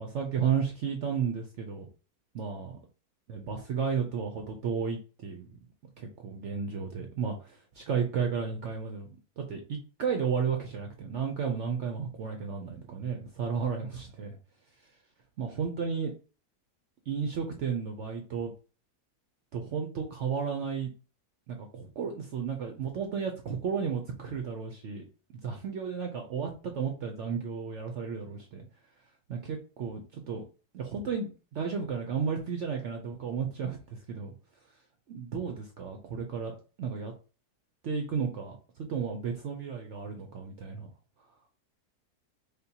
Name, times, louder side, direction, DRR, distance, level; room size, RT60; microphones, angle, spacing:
voice 1, 0.0-1.9 2.3-2.8 3.3-5.6 6.0-14.4 15.4-16.1 17.1-18.5 19.5-20.9 21.5-25.0 25.4-28.7 29.3-30.4 30.7-34.3 35.1-36.5 36.8-37.1 37.8-40.9, right 6 dB, 65° right, 4 dB, 0.7 m, -33 dB
5.0 x 2.2 x 2.8 m, 0.34 s
omnidirectional pair, 1.8 m